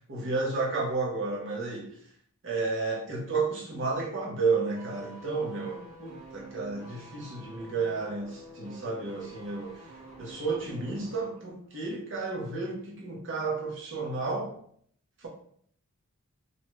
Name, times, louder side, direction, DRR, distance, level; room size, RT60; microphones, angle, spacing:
voice 1, 0.1-2.0 2.4-9.9 10.2-14.5 15.2-15.3, right 3 dB, 55° right, -2 dB, 0.8 m, -32 dB
sound 1, 4.7-11.4 11.7-11.8, equal, 35° right, 1.3 m, -49 dB
2.6 x 2.2 x 3.0 m, 0.64 s
head